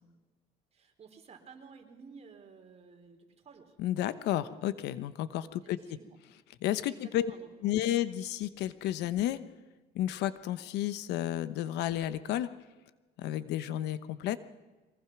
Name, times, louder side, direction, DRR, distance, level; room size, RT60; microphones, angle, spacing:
voice 1, 0.7-3.8 5.4-6.2 6.9-7.7, right 5 dB, 40° right, 4 dB, 4.0 m, -54 dB
voice 2, 3.8-5.8 6.6-7.3 7.6-9.4 9.9-12.5 13.2-14.4, left 12 dB, 85° left, 14 dB, 1.1 m, -32 dB
23.5 x 20.0 x 6.1 m, 1.2 s
cardioid pair, 110°, 17 cm